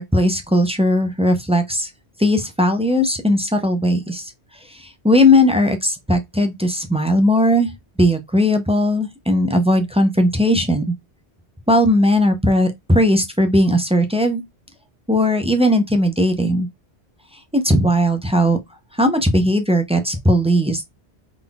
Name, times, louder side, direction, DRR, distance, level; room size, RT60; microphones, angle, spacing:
voice 1, 0.0-1.9 2.2-4.3 4.7-7.7 8.0-10.9 11.7-14.4 15.1-16.7 17.5-18.6 19.0-20.8, left 1 dB, 10° right, 0.4 m, -17 dB
3.8 x 3.7 x 2.3 m
omnidirectional pair, 1.1 m